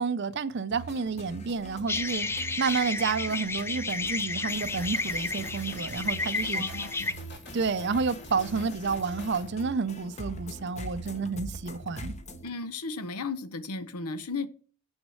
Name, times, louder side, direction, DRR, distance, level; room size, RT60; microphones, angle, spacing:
voice 1, 0.0-6.6 7.5-12.1, right 4 dB, 50° right, 0.5 m, -30 dB
sound 1, 0.7-12.5, right 1 dB, 30° left, 0.9 m, -43 dB
sound 2, 1.9-7.1, left 3 dB, 10° left, 0.4 m, -31 dB
sound 3, 4.5-9.5, left 1 dB, 50° left, 3.0 m, -46 dB
voice 2, 6.5-7.1 12.4-14.5, left 3 dB, 90° left, 0.9 m, -35 dB
7.2 x 6.2 x 6.4 m
head